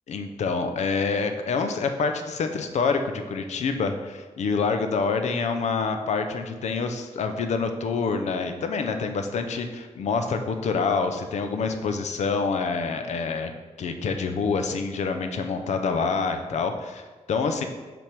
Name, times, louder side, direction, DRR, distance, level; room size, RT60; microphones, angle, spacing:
voice 1, 0.1-13.5 13.8-17.7, left 4 dB, 85° left, 7 dB, 0.6 m, -27 dB
5.8 x 3.5 x 5.9 m, 1.3 s
wide cardioid pair, 110°, 11 cm